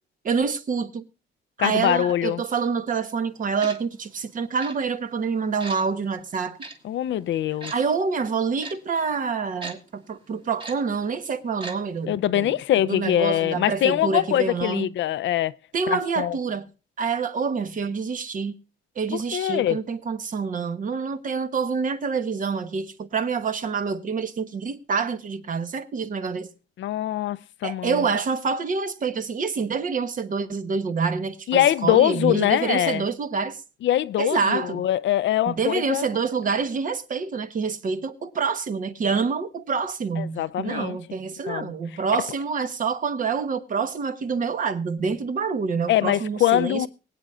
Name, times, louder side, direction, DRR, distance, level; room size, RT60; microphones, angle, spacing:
voice 1, 0.2-1.0 1.6-6.6 7.7-12.5 12.9-14.9 15.7-16.7 17.0-18.5 19.0-26.5 27.6-33.6 34.2-34.9 35.5-46.9, right 5 dB, 40° right, 1.1 m, -27 dB
voice 2, 1.6-2.4 6.8-7.7 12.1-15.5 15.9-16.4 19.1-19.8 26.8-28.0 31.5-33.0 33.8-36.0 40.2-41.0 41.5-41.7 45.9-46.9, left 12 dB, 65° left, 0.5 m, -23 dB
Tick-tock, 3.6-3.8 4.6-4.7 5.6-5.8 6.6-6.7 7.6-7.8 8.6-8.7 9.6-9.7 10.6-10.7 11.6-11.7 12.0-12.1, right 3 dB, 25° right, 1.9 m, -36 dB
24.0 x 8.6 x 2.4 m
cardioid pair, 170°, 21 cm